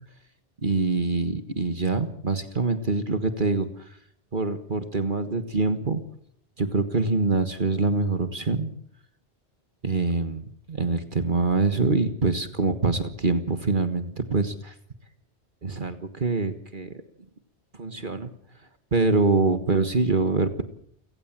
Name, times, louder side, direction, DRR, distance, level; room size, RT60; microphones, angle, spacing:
voice 1, 0.6-3.7 4.3-6.0 6.6-8.7 9.8-14.7 15.6-16.9 17.8-18.3 18.9-20.6, right 3 dB, 50° right, 10 dB, 1.7 m, -25 dB
29.0 x 17.0 x 7.5 m, 0.67 s
omnidirectional pair, 1.1 m